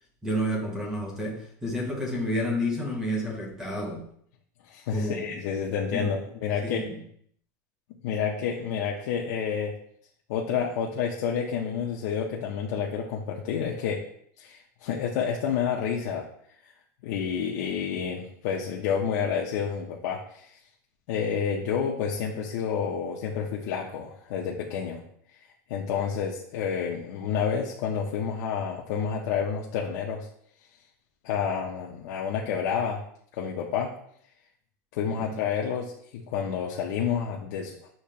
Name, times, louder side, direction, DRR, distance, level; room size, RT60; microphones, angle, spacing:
voice 1, 0.2-4.1 4.9-5.2 5.9-6.1 6.6-7.0 35.1-35.3, equal, 5° right, -1 dB, 0.8 m, -30 dB
voice 2, 4.7-6.9 8.0-9.8 10.3-14.0 14.4-16.3 16.6-16.7 17.0-20.5 21.1-25.0 25.7-30.3 31.2-33.0 33.3-33.9 34.9-37.9, left 7 dB, 55° left, -2 dB, 0.6 m, -29 dB
6.6 x 2.9 x 2.8 m, 0.65 s
supercardioid pair, 175°, 10 cm